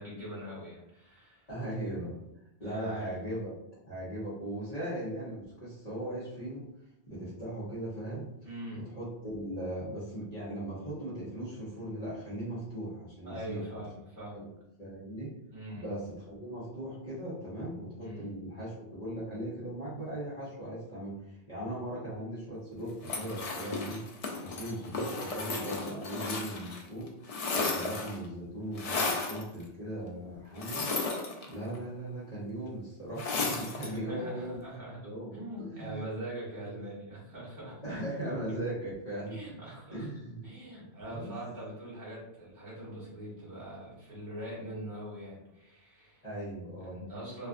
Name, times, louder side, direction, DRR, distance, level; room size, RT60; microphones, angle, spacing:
voice 1, 0.0-1.5 2.6-3.0 8.4-8.8 13.2-14.4 15.5-15.9 18.0-18.2 33.8-35.0 35.3-37.8 39.3-40.1 40.4-46.2 46.9-47.5, right 1 dB, 45° right, -7 dB, 1.4 m, -42 dB
voice 2, 1.5-2.2 2.6-3.5 3.9-6.6 7.1-8.3 8.7-13.6 14.3-14.5 14.8-15.3 15.7-24.1 24.4-27.1 27.5-29.0 29.3-30.9 31.5-34.6 35.0-36.0 36.6-36.8 37.8-39.4 39.9-40.5 41.1-41.3 46.2-47.0, right 1 dB, 40° left, -10 dB, 1.0 m, -38 dB
sound 1, 23.0-26.8 27.1-28.2 28.8-29.4 30.6-31.8 33.2-34.0, left 3 dB, 75° left, 0.3 m, -34 dB
2.5 x 2.4 x 2.4 m, 0.83 s
omnidirectional pair, 1.2 m